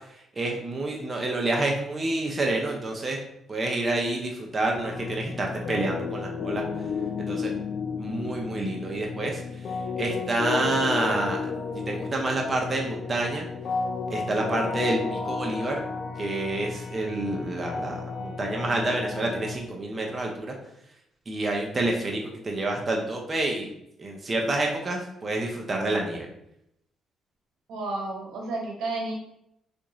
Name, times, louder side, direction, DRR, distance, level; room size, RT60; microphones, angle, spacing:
voice 1, 0.4-3.2 3.5-6.6 7.3-7.5 8.0-9.4 10.0-11.5 11.9-13.4 14.1-15.8 16.2-20.5 21.3-23.7 24.0-26.3, right 2 dB, 30° right, 0 dB, 0.6 m, -28 dB
sound 1, 4.7-19.6, left 5 dB, 60° left, 0.3 m, -33 dB
voice 2, 27.7-29.1, right 2 dB, 85° right, -1 dB, 1.1 m, -31 dB
2.8 x 2.6 x 3.8 m, 0.77 s
cardioid pair, 90°, 0 cm